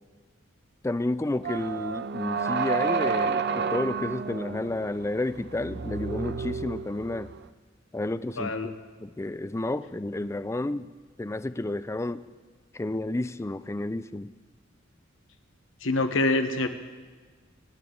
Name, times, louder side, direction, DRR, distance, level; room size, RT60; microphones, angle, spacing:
voice 1, 0.8-7.3 7.9-8.7 9.0-10.9 11.2-12.2 12.7-14.3, left 2 dB, 15° left, 14 dB, 0.4 m, -31 dB
sound 1, 1.4-7.4, right 5 dB, 55° right, 0.5 m, -30 dB
voice 2, 8.4-8.7 15.8-16.7, left 2 dB, 75° left, 8 dB, 1.2 m, -25 dB
24.5 x 11.5 x 3.9 m, 1.4 s
head